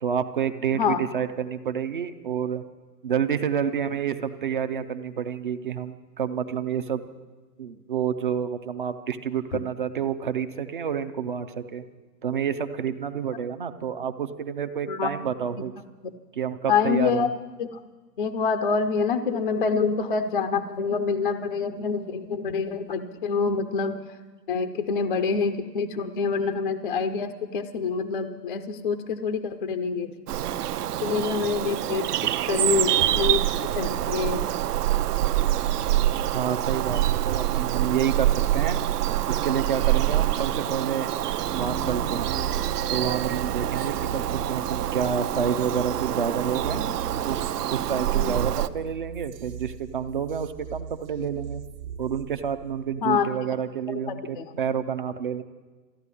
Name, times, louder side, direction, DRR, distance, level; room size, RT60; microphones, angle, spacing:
voice 1, 0.0-2.6 3.0-7.0 7.6-11.8 12.2-15.7 16.3-17.3 36.3-38.8 39.3-41.1 41.5-42.4 42.9-46.9 47.3-47.4 47.7-51.6 52.0-55.4, right 7 dB, 35° right, 10 dB, 0.4 m, -29 dB
voice 2, 16.7-17.3 17.6-17.7 18.2-24.0 24.5-30.1 31.0-32.1 32.5-33.5 33.7-34.5 48.1-48.4 53.0-53.3 54.1-54.4, left 5 dB, 35° left, 8 dB, 0.4 m, -26 dB
Bird vocalization bird call bird song, 30.3-48.7, right 13 dB, 65° right, 0.8 m, -26 dB
sound 1, 41.4-53.0, right 8 dB, 50° right, 1.4 m, -36 dB
14.0 x 9.7 x 9.6 m, 1.3 s
hypercardioid pair, 155°, 50 cm